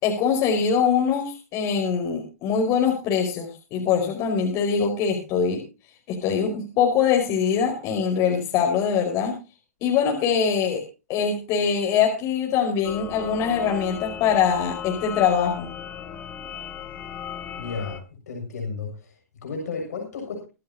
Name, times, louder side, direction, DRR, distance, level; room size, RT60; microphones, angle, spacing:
voice 1, 0.0-5.6 6.1-9.3 9.8-10.8 11.1-15.7, left 7 dB, 35° left, 1 dB, 5.2 m, -23 dB
sound 1, 12.8-18.0, left 8 dB, 20° left, 2.5 m, -36 dB
voice 2, 17.6-18.0 18.3-20.4, left 4 dB, 75° left, 1 dB, 7.1 m, -33 dB
24.5 x 10.5 x 2.9 m, 0.31 s
hypercardioid pair, 130°, 9 cm